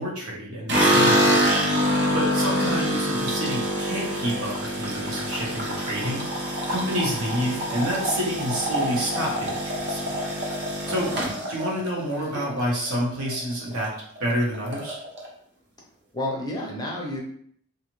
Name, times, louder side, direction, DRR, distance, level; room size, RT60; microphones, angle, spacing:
voice 1, 0.0-10.1 10.9-13.9 14.2-15.0, equal, 70° right, -3 dB, 1.0 m, -29 dB
sound 1, 0.7-12.9 13.3-13.9 14.2-14.3 14.5-15.3, equal, 50° right, 0.7 m, -25 dB
voice 2, 2.2-3.0 10.8-11.6 16.1-17.2, left 1 dB, 20° left, -2 dB, 0.5 m, -33 dB
2.6 x 2.4 x 3.0 m, 0.63 s
head